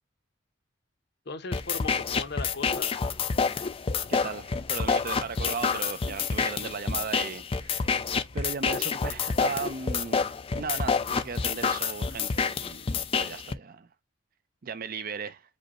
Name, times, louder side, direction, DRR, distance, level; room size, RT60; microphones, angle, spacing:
voice 1, 1.3-3.0 6.2-6.3 6.6-6.7, left 3 dB, 60° left, 0.8 m, -38 dB
sound 1, 1.5-13.5, left 5 dB, 30° left, 0.4 m, -28 dB
voice 2, 4.1-7.9 8.3-10.3 10.6-13.9 14.6-15.4, right 5 dB, 50° right, 0.6 m, -36 dB
5.1 x 2.2 x 4.1 m
head